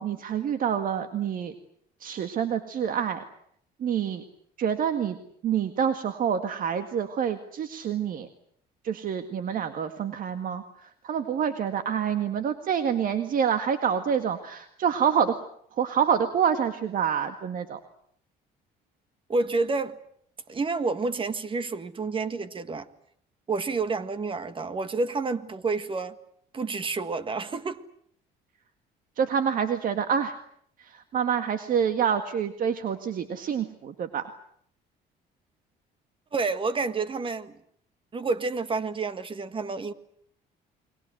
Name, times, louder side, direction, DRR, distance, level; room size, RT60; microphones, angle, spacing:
voice 1, 0.0-1.5 2.0-3.2 3.8-4.2 4.6-5.2 5.4-8.3 8.8-15.4 15.8-17.8 29.2-30.4 30.8-34.3, right 8 dB, 55° right, 1.9 m, -27 dB
voice 2, 19.3-20.0 20.5-22.9 23.5-26.2 26.5-27.8 36.3-37.5 38.1-39.9, right 3 dB, 30° right, 1.7 m, -29 dB
29.5 x 22.5 x 7.9 m
cardioid pair, 110°, 17 cm